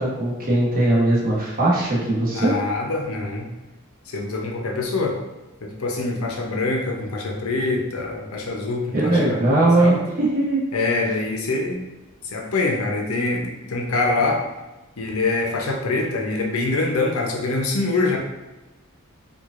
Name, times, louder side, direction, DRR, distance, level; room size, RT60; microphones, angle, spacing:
voice 1, 0.0-2.5 8.9-10.6, right 2 dB, 45° right, -5 dB, 1.1 m, -19 dB
voice 2, 2.3-3.5 4.1-5.2 5.6-9.4 9.8-10.1 10.7-11.8 12.2-14.4 15.0-18.2, left 3 dB, 85° left, 1 dB, 0.6 m, -24 dB
4.6 x 2.4 x 2.5 m, 1.1 s
head